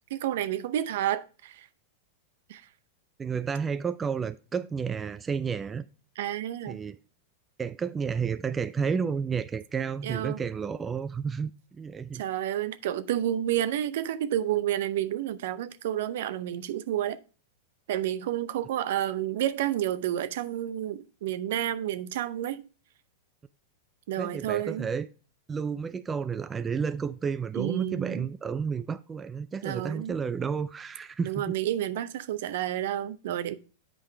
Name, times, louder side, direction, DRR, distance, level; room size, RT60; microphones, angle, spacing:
voice 1, 0.1-1.7 2.5-2.6 6.2-6.8 10.0-10.4 12.1-17.2 17.9-22.6 24.1-24.9 27.5-28.3 29.6-30.2 31.2-33.6, right 12 dB, 65° right, 0.6 m, -30 dB
voice 2, 3.2-5.8 6.7-7.0 7.6-12.2 24.2-25.1 25.5-31.5, right 6 dB, 20° right, 0.4 m, -31 dB
8.5 x 4.9 x 3.3 m
hypercardioid pair, 100°, 0 cm